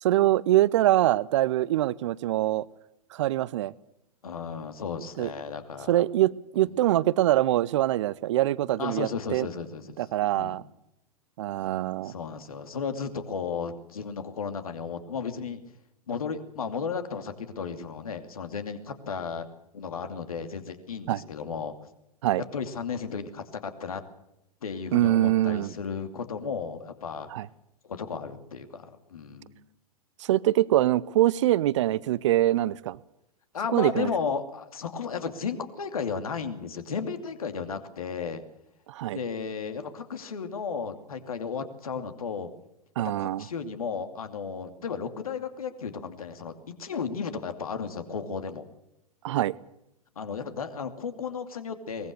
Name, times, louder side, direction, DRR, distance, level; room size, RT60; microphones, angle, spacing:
voice 1, 0.0-2.6 3.1-3.7 5.2-5.3 5.9-9.5 10.0-10.6 11.4-12.1 21.1-21.2 22.2-22.4 24.9-25.7 27.3-27.5 30.2-33.0 33.7-34.1 38.9-39.2 43.0-43.4 49.2-49.5, right 14 dB, 50° right, 0.8 m, -24 dB
voice 2, 4.2-5.9 6.6-6.7 8.8-10.0 10.3-10.6 12.0-15.6 16.1-19.5 19.7-21.7 22.5-24.0 24.6-27.3 27.9-29.6 33.5-38.4 39.1-42.5 43.0-48.6 50.2-52.1, left 6 dB, 65° left, 2.7 m, -34 dB
23.0 x 20.5 x 6.8 m
figure-of-eight pair, 100°, 19 cm